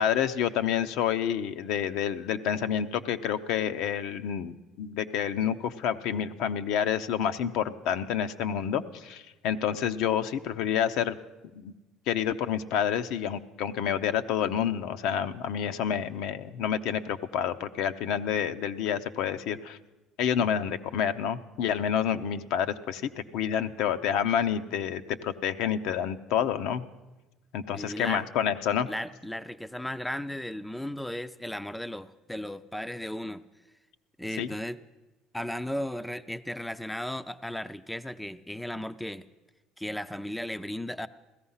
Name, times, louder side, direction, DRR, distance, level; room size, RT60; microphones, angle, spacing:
voice 1, 0.0-11.2 11.5-11.7 12.1-19.8 20.2-26.9 27.5-28.9 34.4-34.5, left 9 dB, 70° left, 9 dB, 0.7 m, -28 dB
voice 2, 27.7-28.3 28.9-33.4 34.2-34.8 35.3-39.3 39.8-41.1, left 1 dB, 5° left, 12 dB, 0.4 m, -35 dB
16.0 x 13.5 x 5.6 m, 1.1 s
cardioid pair, 125°, 0 cm